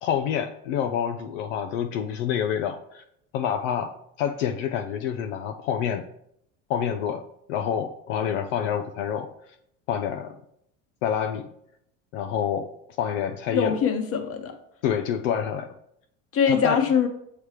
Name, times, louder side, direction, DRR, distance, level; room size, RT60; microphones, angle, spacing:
voice 1, 0.0-3.0 3.3-6.1 6.7-7.2 7.5-9.3 9.9-10.4 11.0-11.5 12.1-13.8 14.8-15.8 16.5-16.8, left 8 dB, 70° left, 6 dB, 0.6 m, -27 dB
voice 2, 13.5-14.5 16.3-17.1, left 6 dB, 35° left, 7 dB, 1.0 m, -23 dB
7.1 x 3.4 x 4.8 m, 0.75 s
hypercardioid pair, 80°, 38 cm